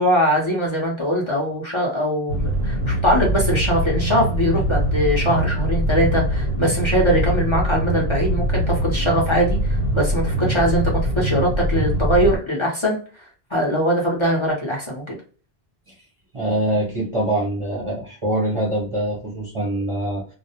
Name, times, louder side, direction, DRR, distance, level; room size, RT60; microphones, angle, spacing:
voice 1, 0.0-15.2, equal, 35° left, -2 dB, 0.7 m, -21 dB
sound 1, 2.3-12.4, right 1 dB, 75° left, 1.1 m, -22 dB
voice 2, 16.3-20.3, right 1 dB, 35° right, -3 dB, 0.6 m, -24 dB
2.3 x 2.0 x 2.8 m, 0.39 s
omnidirectional pair, 1.0 m